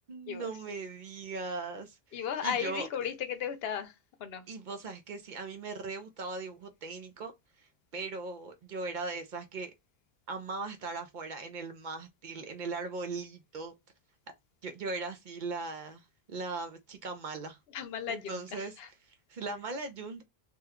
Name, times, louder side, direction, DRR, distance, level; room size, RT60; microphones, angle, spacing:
voice 1, 0.1-2.9 4.5-7.3 7.6-9.7 10.3-13.7 14.6-17.6 18.1-18.8 19.0-20.2, right 3 dB, 55° right, 0.6 m, -39 dB
voice 2, 2.1-4.5 17.7-18.9, left 8 dB, 75° left, 0.8 m, -36 dB
2.9 x 2.2 x 3.5 m
omnidirectional pair, 1.0 m